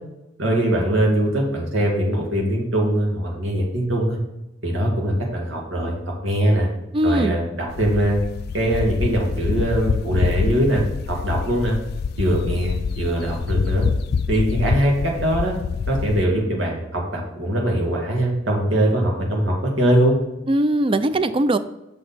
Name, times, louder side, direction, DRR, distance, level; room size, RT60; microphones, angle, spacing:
voice 1, 0.4-4.2 4.6-5.9 6.2-6.7 7.0-8.2 8.5-11.8 12.2-13.9 14.3-15.5 15.9-20.2, right 1 dB, 85° right, -1 dB, 2.3 m, -21 dB
voice 2, 6.9-7.4 20.5-21.6, right 1 dB, 30° right, 12 dB, 0.4 m, -20 dB
sound 1, 7.7-16.2, left 5 dB, 55° left, 0.3 m, -26 dB
6.6 x 6.5 x 4.2 m, 0.93 s
head